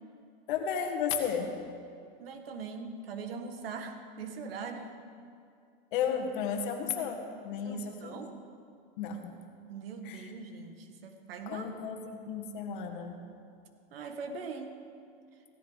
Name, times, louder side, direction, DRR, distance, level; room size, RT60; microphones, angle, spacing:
voice 1, 0.5-1.5 5.9-8.1 9.0-9.3 10.0-10.3 11.5-13.2, left 7 dB, 60° left, 3 dB, 1.7 m, -33 dB
voice 2, 2.2-5.0 7.6-8.3 9.7-11.7 13.9-14.8, right 4 dB, 80° right, 6 dB, 1.6 m, -41 dB
16.5 x 13.5 x 4.0 m, 2.4 s
supercardioid pair, 160°, 29 cm